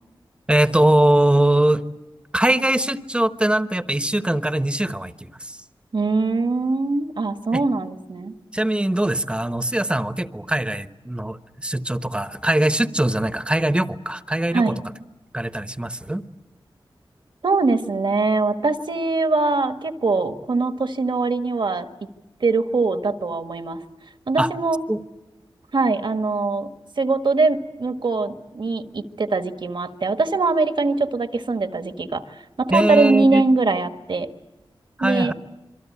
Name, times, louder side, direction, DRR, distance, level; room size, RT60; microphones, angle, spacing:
voice 1, 0.5-1.8 2.3-5.6 7.5-7.6 8.5-14.7 15.3-16.2 24.4-24.5 24.9-25.0 32.7-33.4 35.0-35.3, right 1 dB, 10° right, 12 dB, 1.1 m, -21 dB
voice 2, 5.9-8.3 14.5-14.7 17.4-21.9 22.4-23.8 24.3-24.8 25.7-26.7 27.0-32.2 32.6-34.3 35.0-35.3, right 3 dB, 60° right, 9 dB, 1.5 m, -22 dB
27.0 x 23.5 x 8.6 m, 1.0 s
wide cardioid pair, 95°, 9 cm